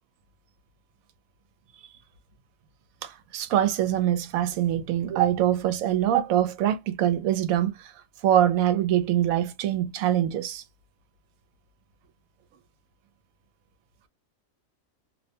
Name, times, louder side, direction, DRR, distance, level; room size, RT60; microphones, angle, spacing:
voice 1, 3.0-7.9 8.2-10.6, right 11 dB, 85° right, 1.0 m, -24 dB
2.5 x 2.1 x 2.7 m
omnidirectional pair, 1.4 m